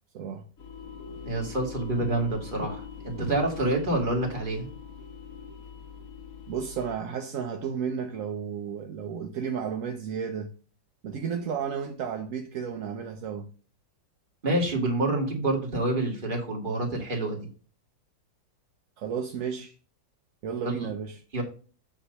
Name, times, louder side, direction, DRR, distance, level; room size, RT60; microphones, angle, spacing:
voice 1, 0.1-0.4 6.5-10.5 11.0-13.5 19.0-19.7 20.4-21.2, right 7 dB, 60° right, 0.9 m, -33 dB
sound 1, 0.6-7.0, left 6 dB, 50° left, 1.6 m, -42 dB
voice 2, 1.2-4.7 14.4-17.5 20.6-20.9 21.3-21.4, right 2 dB, 25° right, 2.2 m, -27 dB
8.1 x 3.2 x 6.4 m
omnidirectional pair, 2.0 m